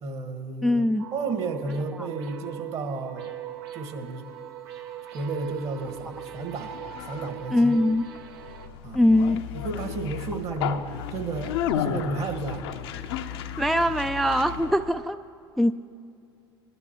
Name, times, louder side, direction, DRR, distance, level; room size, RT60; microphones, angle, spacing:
voice 1, 0.0-0.9 1.1-3.3 3.7-4.3 5.1-6.8 7.0-7.8 8.8-9.0 9.5-12.7, right 3 dB, 50° right, 5 dB, 1.7 m, -32 dB
voice 2, 0.6-1.0 2.0-2.1 7.5-8.0 8.9-9.4 13.6-15.2 15.6-15.7, left 1 dB, ahead, 10 dB, 0.3 m, -22 dB
sound 1, 1.0-8.7, right 10 dB, 75° right, 0.9 m, -41 dB
Conversation, 5.5-15.0, left 9 dB, 70° left, 0.7 m, -34 dB
22.0 x 12.0 x 3.0 m, 2.6 s
hypercardioid pair, 70°, 13 cm